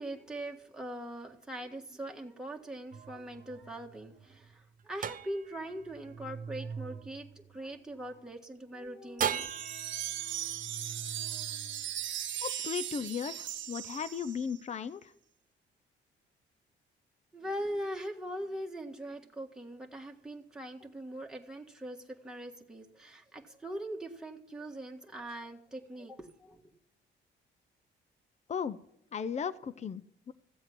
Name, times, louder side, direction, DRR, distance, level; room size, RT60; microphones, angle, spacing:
voice 1, 0.0-9.6 17.3-26.6, right 1 dB, 5° right, 1 dB, 1.7 m, -41 dB
sound 1, 2.9-8.2 9.2-12.6, right 8 dB, 45° right, 0.6 m, -40 dB
sound 2, 9.2-14.6, right 11 dB, 70° right, 0.9 m, -38 dB
voice 2, 12.4-15.1 28.5-28.8 29.1-30.3, left 7 dB, 35° left, 14 dB, 0.6 m, -36 dB
15.0 x 7.9 x 6.1 m, 0.74 s
cardioid pair, 90°, 20 cm